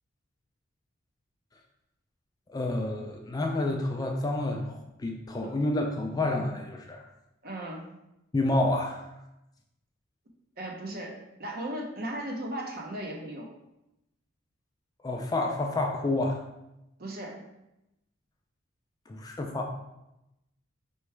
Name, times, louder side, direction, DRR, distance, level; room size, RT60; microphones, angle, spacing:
voice 1, 2.5-7.0 8.3-9.1 15.0-16.4 19.1-19.8, left 2 dB, 20° left, 2 dB, 0.3 m, -29 dB
voice 2, 7.4-8.0 10.6-13.5 17.0-17.4, right 1 dB, 45° right, 0 dB, 0.7 m, -37 dB
4.6 x 3.0 x 3.3 m, 0.90 s
head